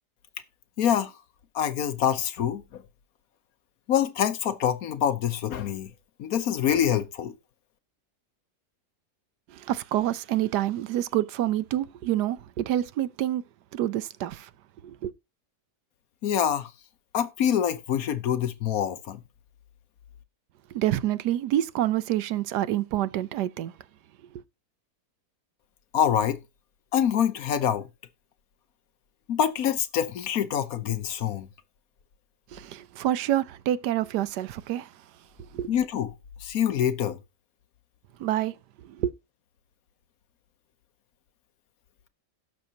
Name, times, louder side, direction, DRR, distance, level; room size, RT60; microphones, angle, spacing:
voice 1, 0.8-1.1 1.5-2.8 3.9-5.9 6.2-7.3 16.2-16.7 17.1-19.2 25.9-26.4 26.9-27.9 29.3-31.5 35.7-36.1 36.4-37.2, left 9 dB, 65° left, 1.2 m, -25 dB
voice 2, 9.5-13.4 13.7-14.5 14.8-15.1 20.7-23.7 24.3-24.4 32.5-34.9 35.5-35.7 38.2-38.5 38.8-39.1, right 13 dB, 85° right, 1.3 m, -27 dB
16.5 x 6.6 x 2.8 m
omnidirectional pair, 1.7 m